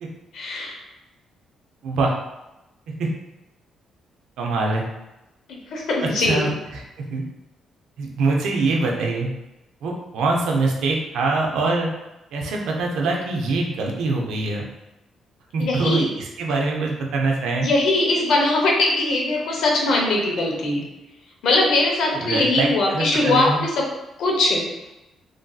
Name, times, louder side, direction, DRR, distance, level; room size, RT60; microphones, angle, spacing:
voice 1, 0.3-0.8 5.5-6.4 15.6-16.1 17.6-20.8 21.4-23.8 24.2-24.7, left 2 dB, 75° left, 0 dB, 0.7 m, -21 dB
voice 2, 4.4-4.9 6.0-7.2 8.0-9.3 9.8-11.9 12.3-14.7 15.5-17.7 22.1-23.6, right 3 dB, 80° right, 0 dB, 0.5 m, -24 dB
3.2 x 2.6 x 2.3 m, 0.95 s
cardioid pair, 90°, 0 cm